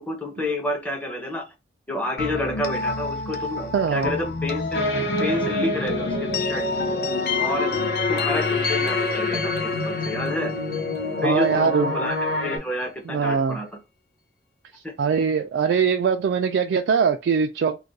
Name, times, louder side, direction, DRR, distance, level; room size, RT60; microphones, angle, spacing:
voice 1, 0.0-1.4 1.9-6.8 7.4-7.7 8.1-10.5 11.2-12.2 12.4-13.7 14.8-14.9, left 1 dB, 10° left, 0.6 m, -29 dB
sound 1, 2.2-11.9, left 4 dB, 60° left, 0.6 m, -30 dB
voice 2, 3.7-4.1 11.2-11.9 13.1-13.6 15.0-17.8, right 6 dB, 80° right, 0.3 m, -22 dB
sound 2, 4.7-12.6, left 2 dB, 85° left, 0.9 m, -26 dB
2.4 x 2.2 x 3.9 m
head